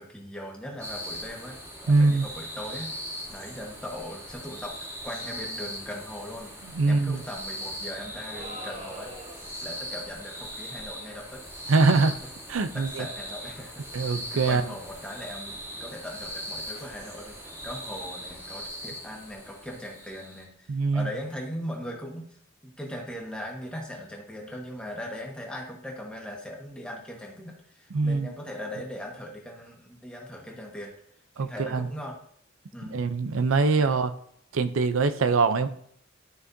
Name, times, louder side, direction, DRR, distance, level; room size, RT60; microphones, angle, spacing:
voice 1, 0.0-1.6 1.8-2.9 3.3-6.5 6.9-17.4 17.6-22.3 22.8-30.9 31.4-32.2 32.7-33.0 33.8-34.0, equal, 5° left, -1 dB, 1.4 m, -39 dB
sound 1, 0.8-20.4, equal, 15° right, 1.8 m, -40 dB
voice 2, 1.9-2.2 6.8-7.2 11.7-12.2 12.5-13.1 13.9-14.6 20.7-21.1 27.9-28.3 31.4-31.9 32.9-34.1 34.5-35.7, right 3 dB, 85° right, 10 dB, 0.5 m, -23 dB
sound 2, 8.3-9.7, right 1 dB, 40° right, 1.8 m, -42 dB
12.5 x 5.8 x 2.7 m, 0.65 s
head